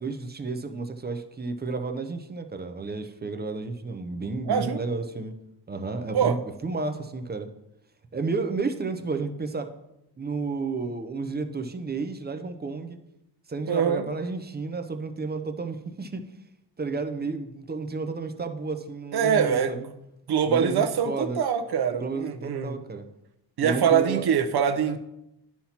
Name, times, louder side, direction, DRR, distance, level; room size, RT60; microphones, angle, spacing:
voice 1, 0.0-5.3 5.7-7.5 8.1-9.7 10.2-13.0 13.5-16.2 16.8-19.9 20.5-21.4 21.9-23.1 23.6-24.3, right 4 dB, 25° right, 8 dB, 0.5 m, -32 dB
voice 2, 4.5-4.8 6.1-6.4 13.7-14.1 19.1-19.9 20.3-22.7 23.6-25.0, right 7 dB, 60° right, 6 dB, 0.7 m, -24 dB
10.0 x 5.8 x 2.8 m, 0.88 s
wide cardioid pair, 135°, 43 cm